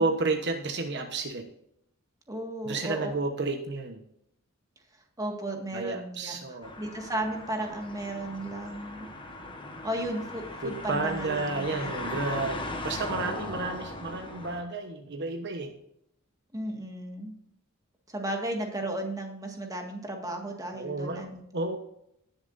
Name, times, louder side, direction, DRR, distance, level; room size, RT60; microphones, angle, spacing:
voice 1, 0.0-1.4 2.6-4.0 5.7-6.7 10.6-15.7 20.7-21.2 21.5-21.8, right 3 dB, 55° right, 5 dB, 1.1 m, -31 dB
voice 2, 2.3-3.1 5.2-9.1 9.8-12.2 16.5-17.3 18.1-21.4, right 1 dB, 15° right, 2 dB, 1.9 m, -35 dB
sound 1, 6.6-14.6, left 2 dB, 25° left, 1.3 m, -38 dB
18.0 x 7.2 x 2.7 m, 0.75 s
head